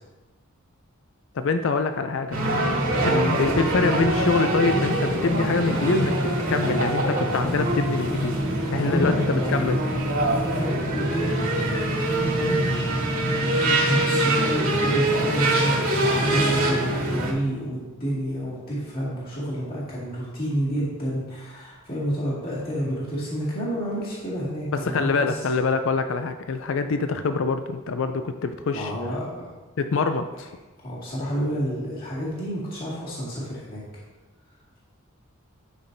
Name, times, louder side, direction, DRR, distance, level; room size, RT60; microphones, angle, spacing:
voice 1, 1.3-2.4 3.0-6.2 6.5-8.3 8.7-9.8 24.7-28.9 29.8-30.5, left 4 dB, 60° left, 8 dB, 0.4 m, -25 dB
sound 1, 2.3-17.3, right 1 dB, 80° right, 2.4 m, -24 dB
voice 2, 8.8-9.8 10.3-12.6 13.0-25.5 28.7-29.5 30.8-33.8, equal, 45° left, -8 dB, 2.2 m, -30 dB
11.5 x 5.8 x 2.7 m, 1.2 s
head